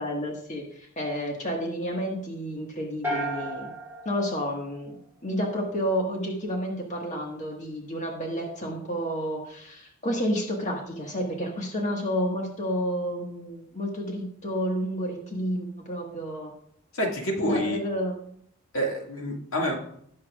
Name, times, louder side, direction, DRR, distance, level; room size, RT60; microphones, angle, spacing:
voice 1, 0.0-3.7 4.0-5.0 5.2-16.5 17.4-18.1, equal, 35° left, 0 dB, 1.6 m, -30 dB
sound 1, 3.0-5.3, right 1 dB, 10° right, 2.8 m, -34 dB
voice 2, 16.9-17.8 18.7-19.8, equal, 75° left, 0 dB, 2.1 m, -27 dB
17.0 x 7.3 x 2.4 m, 0.67 s
head